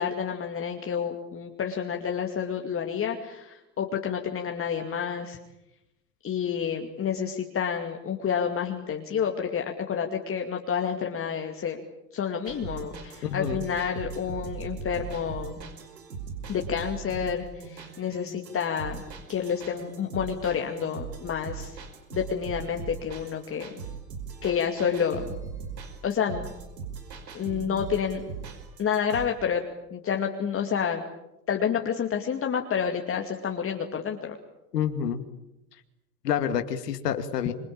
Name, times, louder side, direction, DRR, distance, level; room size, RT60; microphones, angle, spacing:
voice 1, 0.0-5.4 6.2-11.8 12.1-15.6 16.5-19.0 19.3-21.8 22.1-23.7 24.4-25.3 26.0-26.5 27.3-28.2 28.8-29.6 29.9-31.0 31.5-34.4, left 7 dB, 25° left, 3 dB, 2.5 m, -29 dB
sound 1, 12.4-29.3, right 6 dB, 80° right, 5.5 m, -40 dB
voice 2, 34.7-35.2 36.2-37.5, left 9 dB, 75° left, 8 dB, 2.4 m, -28 dB
26.5 x 24.0 x 8.9 m, 0.92 s
hypercardioid pair, 95°, 48 cm